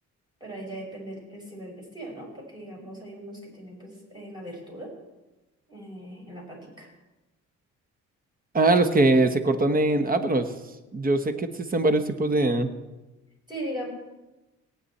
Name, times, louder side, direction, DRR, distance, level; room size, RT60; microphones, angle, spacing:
voice 1, 0.4-4.9 5.7-6.9 13.5-13.9, right 1 dB, 15° right, -2 dB, 5.4 m, -39 dB
voice 2, 8.5-10.5 10.9-12.7, right 2 dB, 30° right, 9 dB, 1.2 m, -22 dB
18.5 x 9.4 x 4.3 m, 1.1 s
cardioid pair, 90°, 30 cm